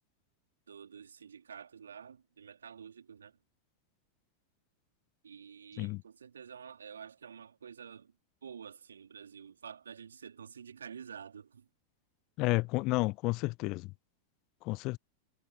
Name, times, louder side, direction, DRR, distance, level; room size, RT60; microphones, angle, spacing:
voice 1, 0.7-3.4 5.2-8.1 8.4-11.7, right 7 dB, 70° right, 3.8 m, -49 dB
voice 2, 12.4-13.9 14.6-15.0, left 23 dB, 40° left, 0.5 m, -31 dB
figure-of-eight pair, 90°, 0 cm